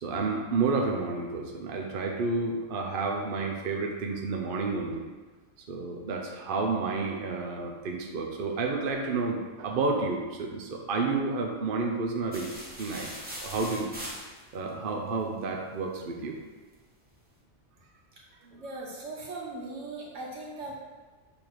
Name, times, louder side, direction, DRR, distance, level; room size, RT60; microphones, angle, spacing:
voice 1, 0.0-5.0 5.7-12.5 12.8-13.1 13.4-13.9 14.5-16.4 18.4-18.6, right 3 dB, 55° right, 1 dB, 0.8 m, -30 dB
sound 1, 12.3-14.7, equal, 10° right, 1.2 m, -40 dB
voice 2, 18.5-20.7, right 2 dB, 85° right, -4 dB, 1.7 m, -39 dB
7.0 x 3.6 x 4.6 m, 1.3 s
omnidirectional pair, 1.2 m